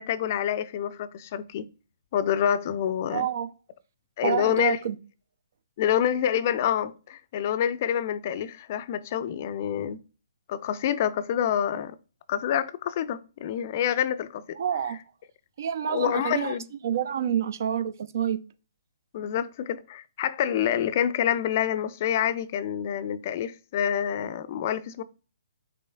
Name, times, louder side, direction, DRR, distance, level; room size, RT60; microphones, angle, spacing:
voice 1, 0.0-1.7 2.1-3.3 4.2-4.8 5.8-10.0 10.5-12.0 12.3-14.6 15.9-16.7 19.1-25.0, left 9 dB, 40° left, 0.4 m, -27 dB
voice 2, 3.1-3.5 4.2-5.0 14.6-15.0 15.6-16.5 16.8-18.4, right 9 dB, 50° right, 0.4 m, -27 dB
6.0 x 3.0 x 2.2 m
figure-of-eight pair, 130°, 2 cm